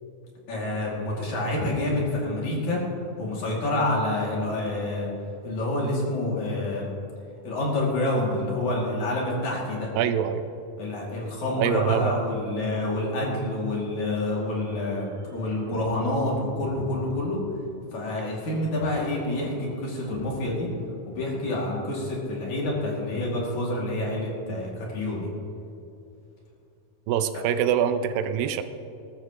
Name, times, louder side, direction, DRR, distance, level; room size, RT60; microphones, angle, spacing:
voice 1, 0.5-2.8 3.2-5.1 5.4-6.9 7.4-9.9 10.8-17.4 17.9-20.7 21.1-25.3, left 1 dB, 55° left, -4 dB, 3.7 m, -28 dB
voice 2, 9.9-10.4 11.6-12.2 27.1-28.6, right 9 dB, 80° right, 10 dB, 2.3 m, -24 dB
sound 1, 14.1-17.3 18.5-21.7, right 2 dB, 55° right, 2.8 m, -45 dB
20.5 x 13.0 x 3.0 m, 2.7 s
omnidirectional pair, 4.1 m